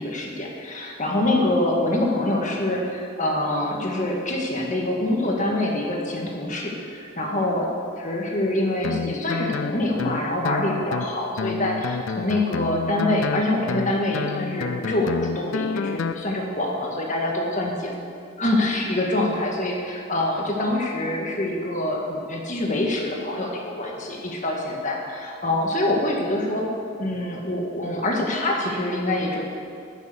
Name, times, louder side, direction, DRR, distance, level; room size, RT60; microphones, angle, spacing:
voice 1, 0.0-7.7 8.0-17.9 18.4-23.5 23.8-26.7 27.0-29.4, left 1 dB, 35° left, -1 dB, 1.7 m, -25 dB
Guitar, 8.8-16.2, left 5 dB, 65° left, 0.4 m, -29 dB
10.5 x 7.0 x 8.1 m, 2.4 s
head